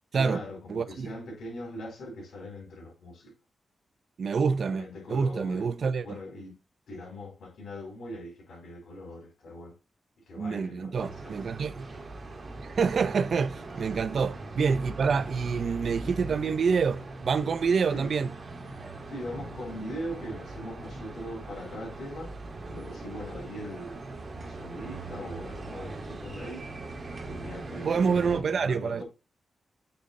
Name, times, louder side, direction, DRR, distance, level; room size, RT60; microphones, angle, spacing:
voice 1, 0.1-3.3 4.7-5.7 6.0-6.6 6.9-9.8 10.3-11.4 17.9-18.1 19.1-22.4 22.7-24.0 24.4-26.7 27.2-29.0, equal, 90° left, 4.4 m, -41 dB
voice 2, 0.7-1.1 4.2-4.8 5.1-6.1 10.4-11.9 12.6-18.3 27.8-29.0, right 5 dB, 65° right, 0.6 m, -27 dB
sound 1, 10.9-28.4, right 2 dB, 50° right, 2.0 m, -40 dB
7.9 x 3.9 x 4.1 m
wide cardioid pair, 100°, 0 cm